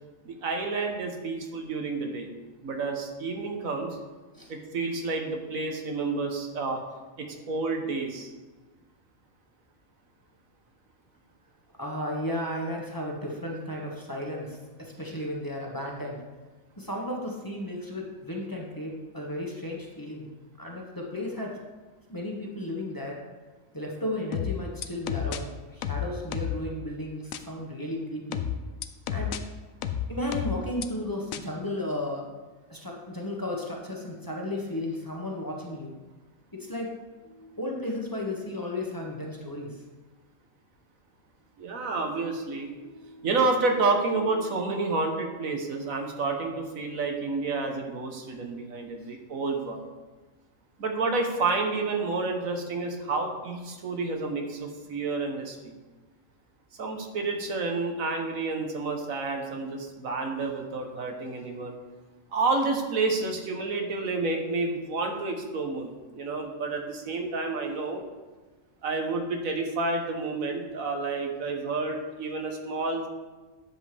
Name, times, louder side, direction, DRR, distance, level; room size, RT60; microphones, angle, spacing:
voice 1, 0.2-2.3 2.6-4.0 4.5-6.8 7.2-8.3 41.6-42.7 43.2-49.8 50.8-55.7 56.8-61.8 62.3-68.0 68.8-73.1, right 3 dB, 90° right, 3 dB, 1.6 m, -29 dB
voice 2, 11.8-16.2 16.8-20.3 20.6-21.6 22.1-23.2 23.7-28.4 29.1-29.4 30.1-32.3 32.7-35.9 36.5-36.9 37.2-39.8 42.7-43.3, left 1 dB, 15° left, -2 dB, 1.3 m, -34 dB
sound 1, 24.3-25.4 25.8-26.6 27.3-27.4 28.3-29.4 29.8-30.9 31.3-31.4, left 9 dB, 85° left, 1.0 m, -30 dB
11.0 x 7.6 x 3.5 m, 1.3 s
omnidirectional pair, 1.4 m